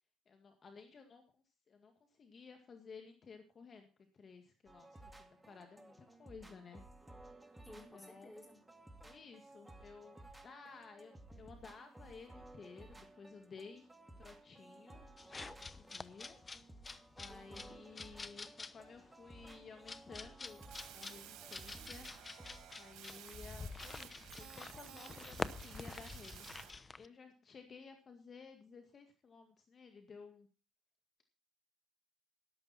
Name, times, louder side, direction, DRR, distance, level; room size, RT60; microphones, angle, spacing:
voice 1, 0.3-3.9 4.1-7.2 7.6-8.4 9.0-13.9 14.2-15.1 15.4-16.4 17.2-22.1 22.8-26.7 27.0-30.5, left 5 dB, 45° left, 6 dB, 2.1 m, -55 dB
sound 1, 4.7-22.7, right 2 dB, 10° right, 2.2 m, -57 dB
voice 2, 7.6-8.6 17.3-17.8, left 1 dB, 10° left, 3 dB, 5.3 m, -55 dB
sound 2, 15.2-27.1, left 4 dB, 30° left, 0.9 m, -48 dB
sound 3, 20.5-26.7, right 11 dB, 80° right, 2.2 m, -54 dB
13.5 x 11.5 x 4.3 m, 0.36 s
cardioid pair, 85°, 0 cm